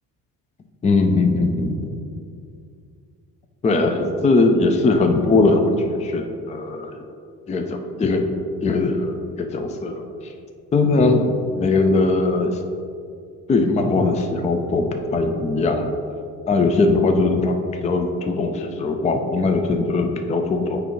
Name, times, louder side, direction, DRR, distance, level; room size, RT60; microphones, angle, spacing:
voice 1, 0.8-2.0 3.6-7.0 7.5-8.2 8.6-10.0 10.7-12.5 13.5-15.9 16.5-20.8, left 3 dB, 15° left, 5 dB, 0.5 m, -20 dB
6.7 x 4.9 x 3.1 m, 2.4 s
hypercardioid pair, 60°, 47 cm